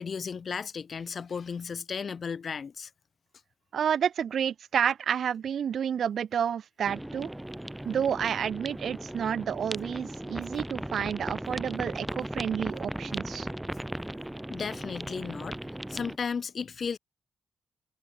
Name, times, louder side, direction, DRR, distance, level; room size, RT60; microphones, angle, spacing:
voice 1, 0.0-2.9 14.5-15.6 15.9-17.0, left 6 dB, 50° left, 2.3 m, -34 dB
voice 2, 3.7-7.3 7.9-13.5, right 8 dB, 70° right, 2.0 m, -30 dB
sound 1, 6.8-16.2, right 1 dB, 5° right, 7.8 m, -37 dB
cardioid pair, 110°, 0 cm